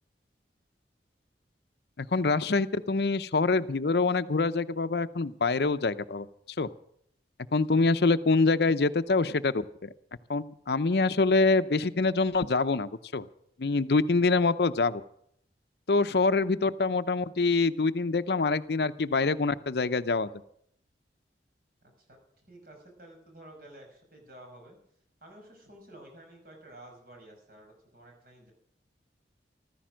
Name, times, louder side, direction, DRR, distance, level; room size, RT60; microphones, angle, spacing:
voice 1, 2.0-6.3 6.6-6.7 7.5-9.9 10.3-13.3 13.6-15.0 15.9-20.3, left 3 dB, 65° left, 13 dB, 0.6 m, -25 dB
voice 2, 21.8-24.8 25.2-28.5, right 1 dB, 55° right, 2 dB, 5.6 m, -52 dB
14.5 x 14.0 x 6.3 m, 0.70 s
head